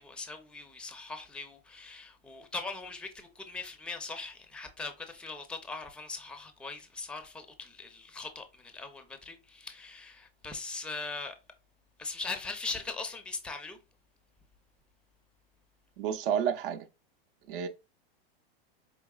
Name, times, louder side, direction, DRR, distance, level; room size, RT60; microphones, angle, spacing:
voice 1, 0.0-11.4 12.0-13.8, left 3 dB, 5° left, 0.5 m, -40 dB
voice 2, 16.0-16.8 17.5-17.7, right 8 dB, 65° right, 0.7 m, -30 dB
4.8 x 3.1 x 2.3 m
hypercardioid pair, 120°, 30 cm